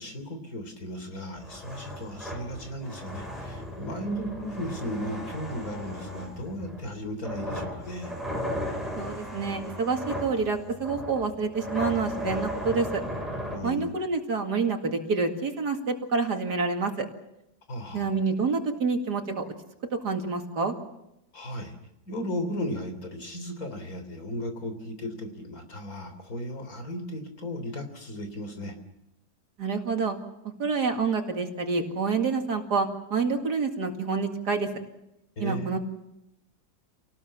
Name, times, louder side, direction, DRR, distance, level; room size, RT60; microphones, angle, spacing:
voice 1, 0.0-8.2 13.5-14.0 17.7-18.1 21.3-21.8 22.1-28.8 35.4-35.8, equal, 60° left, 7 dB, 3.8 m, -35 dB
sound 1, 1.3-13.6, equal, ahead, 6.5 m, -36 dB
voice 2, 9.0-13.0 13.6-17.1 17.9-19.4 20.0-20.7 29.6-30.2 30.6-34.7 35.4-35.8, right 4 dB, 80° right, 4 dB, 2.8 m, -27 dB
27.5 x 19.0 x 7.3 m, 0.88 s
omnidirectional pair, 1.7 m